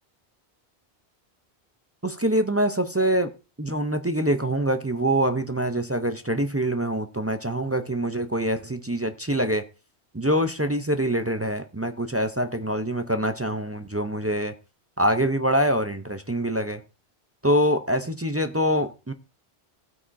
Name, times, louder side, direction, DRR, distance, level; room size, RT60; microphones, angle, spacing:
voice 1, 2.0-3.3 3.6-9.6 10.1-14.5 15.0-16.8 17.4-19.1, right 1 dB, 20° right, 0.4 m, -25 dB
15.5 x 8.5 x 2.6 m
omnidirectional pair, 1.1 m